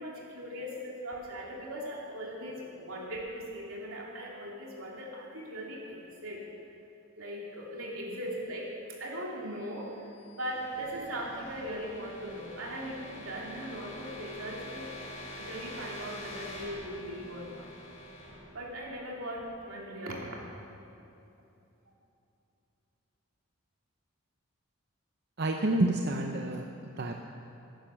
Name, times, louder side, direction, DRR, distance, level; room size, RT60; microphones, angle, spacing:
voice 1, 0.0-6.4 7.2-14.9 15.4-17.7 18.5-20.5, equal, 85° right, -3 dB, 3.0 m, -39 dB
sound 1, 9.8-19.5, left 1 dB, 35° left, 3.1 m, -46 dB
voice 2, 25.4-26.6 27.0-27.1, right 1 dB, 50° right, 3 dB, 0.7 m, -28 dB
15.0 x 10.5 x 6.4 m, 2.8 s
head